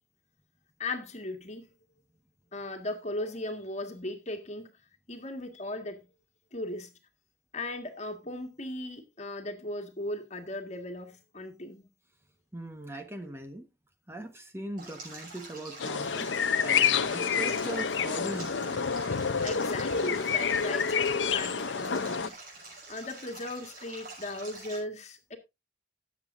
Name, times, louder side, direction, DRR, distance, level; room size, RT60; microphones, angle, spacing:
voice 1, 0.8-1.7 2.5-4.7 5.1-6.0 6.5-6.9 7.5-11.9 19.4-22.3 22.9-25.4, left 1 dB, 40° left, 1.8 m, -37 dB
voice 2, 12.5-13.7 14.1-16.3 16.6-18.9, right 1 dB, 15° right, 1.2 m, -40 dB
Stream, 14.8-24.8, right 3 dB, 50° right, 6.5 m, -46 dB
sound 1, 15.8-22.3, left 6 dB, 85° left, 0.7 m, -28 dB
18.5 x 7.5 x 2.6 m
head